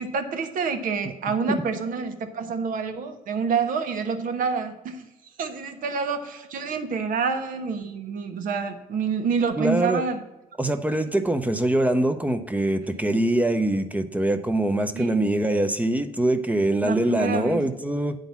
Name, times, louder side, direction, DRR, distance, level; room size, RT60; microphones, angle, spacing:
voice 1, 0.0-5.1 5.4-10.2 14.9-15.1 16.8-17.7, right 5 dB, 65° right, 8 dB, 1.1 m, -27 dB
voice 2, 9.6-10.0 10.6-18.2, right 1 dB, 10° right, 8 dB, 0.7 m, -23 dB
9.1 x 3.9 x 7.1 m, 1.0 s
cardioid pair, 95°, 15 cm